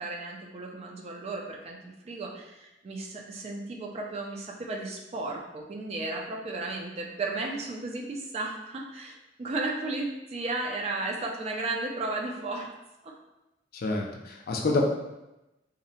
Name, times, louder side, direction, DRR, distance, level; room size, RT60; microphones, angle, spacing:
voice 1, 0.0-12.7 13.0-13.1, right 2 dB, 35° right, 0 dB, 0.3 m, -34 dB
voice 2, 13.8-14.8, left 3 dB, 55° left, 0 dB, 0.4 m, -27 dB
2.6 x 2.1 x 2.7 m, 0.96 s
head